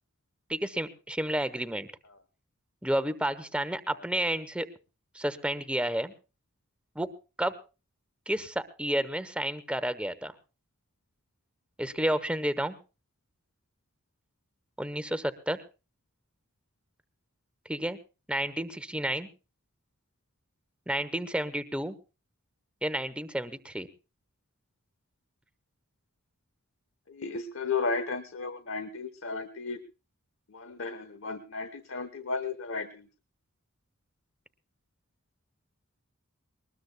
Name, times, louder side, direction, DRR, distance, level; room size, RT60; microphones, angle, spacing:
voice 1, 0.5-1.9 2.8-4.7 5.1-6.1 6.9-7.1 7.4-7.5 8.3-10.3 11.8-12.8 14.8-15.6 17.7-18.0 18.3-19.3 20.9-22.0 22.8-23.9, right 1 dB, 5° right, 11 dB, 0.9 m, -31 dB
voice 2, 27.1-29.8 30.5-33.0, left 4 dB, 65° left, 12 dB, 1.0 m, -34 dB
22.0 x 20.0 x 2.3 m, 0.33 s
head